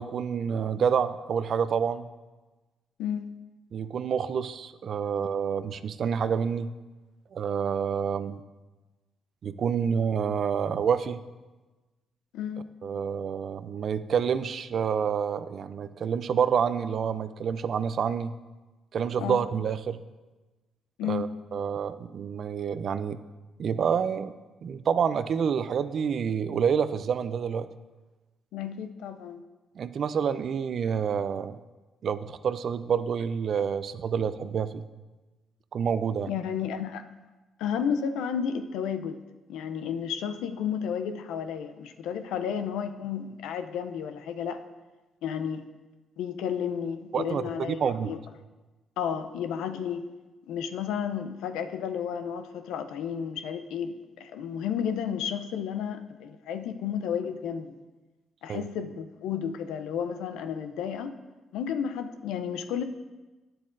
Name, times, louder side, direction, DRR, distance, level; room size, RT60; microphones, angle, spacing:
voice 1, 0.0-2.1 3.7-6.7 7.3-8.4 9.4-11.2 12.8-18.3 18.9-20.0 21.0-23.2 23.6-24.3 24.6-27.7 29.8-31.6 32.0-34.9 35.7-36.3 47.1-48.1 58.5-58.6, right 7 dB, 60° right, 13 dB, 0.3 m, -28 dB
voice 2, 12.3-12.7 19.2-19.4 21.0-21.3 28.5-29.4 36.3-37.1 37.6-39.2 39.5-44.6 45.2-45.6 46.2-48.2 49.0-50.0 50.5-57.8 58.4-61.1 61.5-62.8, left 8 dB, 85° left, 9 dB, 0.4 m, -32 dB
9.5 x 7.6 x 2.5 m, 1.2 s
supercardioid pair, 60°, 0 cm